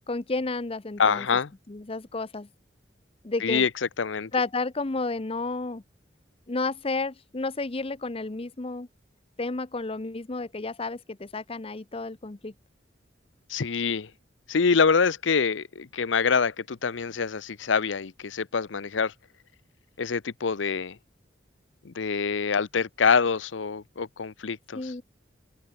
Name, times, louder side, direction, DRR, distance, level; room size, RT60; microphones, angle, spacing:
voice 1, 0.1-1.3 1.7-2.5 3.2-3.7 4.3-5.8 6.5-8.9 9.4-12.5 24.7-25.0, left 3 dB, 30° left, 0.8 m, -31 dB
voice 2, 1.0-1.5 3.4-3.7 4.0-4.3 13.5-14.1 14.5-19.1 20.0-21.0 21.8-24.9, left 5 dB, 90° left, 0.7 m, -25 dB
open air
head